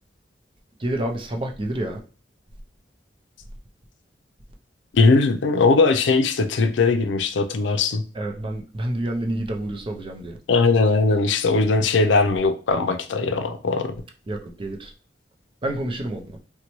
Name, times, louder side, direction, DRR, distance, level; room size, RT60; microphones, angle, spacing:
voice 1, 0.8-2.0 8.2-10.3 14.3-14.9 15.6-16.2, right 1 dB, 30° right, 0.5 m, -28 dB
voice 2, 4.9-8.0 10.5-13.9, left 3 dB, 85° left, 0.4 m, -19 dB
4.0 x 2.2 x 3.0 m
head